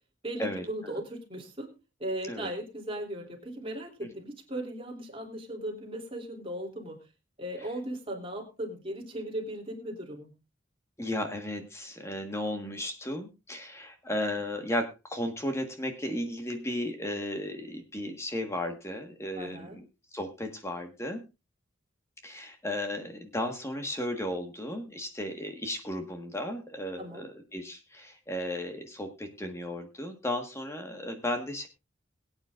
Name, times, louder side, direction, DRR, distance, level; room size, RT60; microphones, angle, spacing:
voice 1, 0.2-1.7 2.0-7.0 7.4-10.3 19.4-19.8 27.0-27.3, right 1 dB, 30° right, 1 dB, 3.0 m, -37 dB
voice 2, 11.0-19.8 20.1-21.2 22.2-31.7, left 1 dB, 15° left, 5 dB, 1.5 m, -34 dB
22.0 x 9.0 x 2.5 m, 0.26 s
head